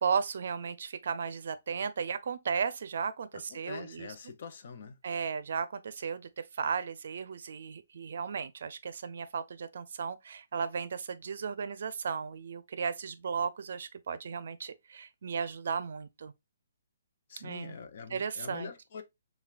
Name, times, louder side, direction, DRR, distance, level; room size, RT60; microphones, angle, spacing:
voice 1, 0.0-4.1 5.0-16.3 17.4-17.7 18.1-18.7, right 6 dB, 65° right, 0.5 m, -35 dB
voice 2, 3.3-5.0 17.3-19.0, left 5 dB, 50° left, 0.6 m, -44 dB
5.6 x 2.3 x 2.3 m
hypercardioid pair, 160°, 0 cm